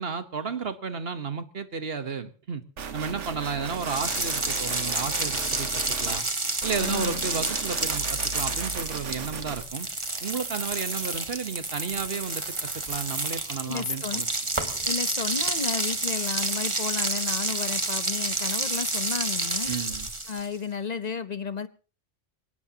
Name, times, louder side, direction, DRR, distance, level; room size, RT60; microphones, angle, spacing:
voice 1, 0.0-2.6 2.9-6.2 6.6-9.9 10.2-14.3 19.6-20.1, right 5 dB, 55° right, 1.4 m, -33 dB
sound 1, 2.8-6.2 6.6-9.6, right 6 dB, 80° right, 1.5 m, -36 dB
sound 2, 3.7-20.6, right 2 dB, 25° right, 1.6 m, -29 dB
voice 2, 6.8-7.2 13.7-14.2 14.8-19.7 20.3-21.7, left 6 dB, 40° left, 0.9 m, -32 dB
23.5 x 18.5 x 2.9 m
omnidirectional pair, 1.2 m